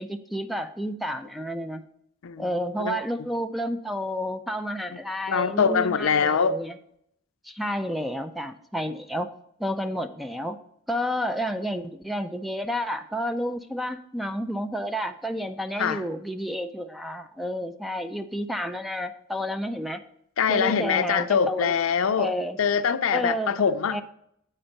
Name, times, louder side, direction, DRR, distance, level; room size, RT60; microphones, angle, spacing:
voice 1, 0.0-1.8 2.4-6.7 7.4-9.3 9.6-10.6 10.9-20.0 20.5-21.7 22.2-22.6 23.1-23.5 23.9-24.0, equal, ahead, 0.3 m, -30 dB
voice 2, 5.3-6.6 15.8-16.0 20.4-22.3 22.6-24.0, left 6 dB, 75° left, 0.5 m, -23 dB
8.8 x 4.4 x 5.1 m
head